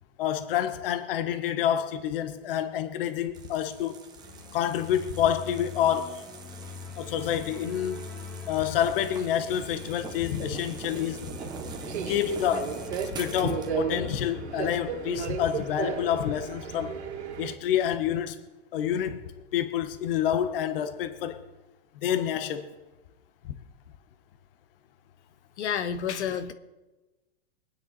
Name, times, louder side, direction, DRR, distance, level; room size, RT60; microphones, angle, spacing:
voice 1, 0.2-4.0 4.5-6.2 7.0-8.0 8.5-11.2 12.1-12.7 13.1-16.9 17.4-18.4 18.7-19.2 19.5-21.4 22.0-22.7 23.5-23.6, left 10 dB, 55° left, 9 dB, 1.2 m, -28 dB
sound 1, 3.3-13.7, right 5 dB, 10° right, 1.0 m, -44 dB
sound 2, 4.2-14.8, left 4 dB, 5° left, 1.6 m, -44 dB
Subway metro underground, 9.6-17.5, right 6 dB, 80° right, 2.5 m, -35 dB
voice 2, 25.6-26.5, left 8 dB, 85° left, 9 dB, 1.3 m, -29 dB
24.0 x 9.2 x 4.2 m, 1.1 s
hypercardioid pair, 155°, 34 cm